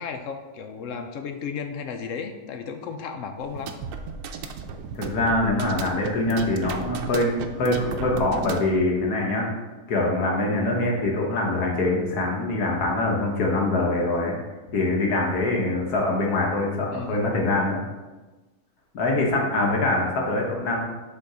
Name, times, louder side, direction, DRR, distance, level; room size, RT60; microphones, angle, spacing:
voice 1, 0.0-3.8 16.9-17.4, left 6 dB, 65° left, 6 dB, 0.8 m, -34 dB
sound 1, 3.4-8.8, right 5 dB, 80° right, 1.1 m, -35 dB
voice 2, 4.9-9.5 9.9-14.4 14.7-17.8 18.9-20.8, left 2 dB, 90° left, -1 dB, 1.7 m, -24 dB
6.6 x 3.7 x 4.8 m, 1.2 s
omnidirectional pair, 1.6 m